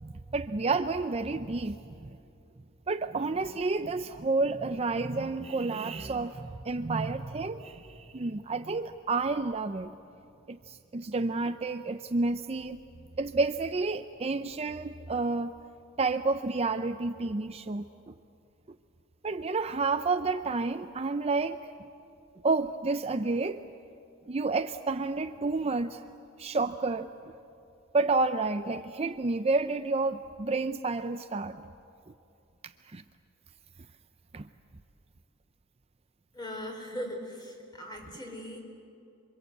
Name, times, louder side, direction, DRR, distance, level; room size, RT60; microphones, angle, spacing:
voice 1, 0.0-2.1 2.9-9.9 10.5-12.8 13.2-15.5 16.0-18.1 19.2-21.6 22.4-23.6 24.3-26.0 26.4-27.1 27.9-31.6 32.9-33.0 34.3-34.5, right 3 dB, 30° right, 9 dB, 0.5 m, -30 dB
voice 2, 36.3-38.6, equal, 20° left, 2 dB, 4.3 m, -39 dB
27.5 x 24.0 x 8.1 m, 2.6 s
head